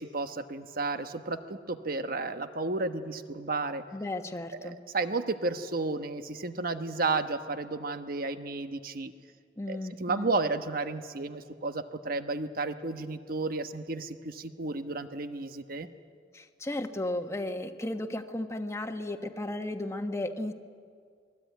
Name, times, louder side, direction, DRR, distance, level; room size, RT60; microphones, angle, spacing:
voice 1, 0.0-3.8 4.5-9.1 9.7-15.9, right 3 dB, 55° right, 9 dB, 1.2 m, -32 dB
voice 2, 3.9-4.8 9.6-10.3 16.3-20.5, left 1 dB, 15° left, 5 dB, 1.3 m, -34 dB
28.0 x 20.5 x 9.4 m, 2.1 s
head